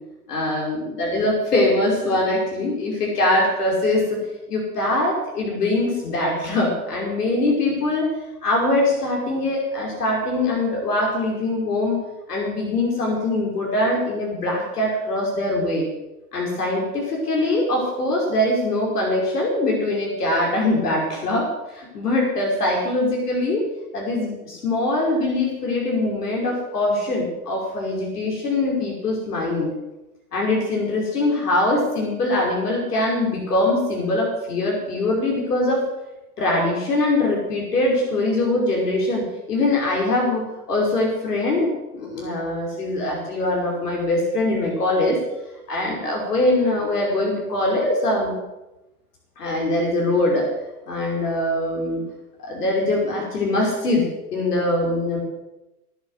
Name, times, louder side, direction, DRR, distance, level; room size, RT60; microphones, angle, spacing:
voice 1, 0.3-4.2 4.5-8.1 8.4-12.0 12.3-15.9 16.3-23.7 23.9-29.7 30.3-35.9 36.4-45.2 45.7-48.4 49.4-50.5 50.9-52.0 52.4-54.1 54.3-55.2, left 2 dB, 80° left, -1 dB, 5.4 m, -22 dB
18.0 x 8.3 x 7.9 m, 0.98 s
hypercardioid pair, 120°, 46 cm